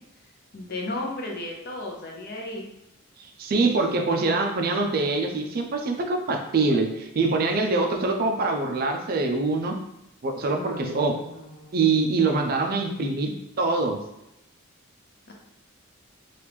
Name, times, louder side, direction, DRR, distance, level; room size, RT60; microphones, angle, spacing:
voice 1, 0.5-2.6 10.5-11.7 15.3-15.4, left 2 dB, 50° left, 0 dB, 0.6 m, -35 dB
voice 2, 3.4-9.7 10.2-11.1 11.7-14.0, right 3 dB, 45° right, 3 dB, 0.4 m, -24 dB
3.0 x 2.4 x 3.4 m, 0.86 s
head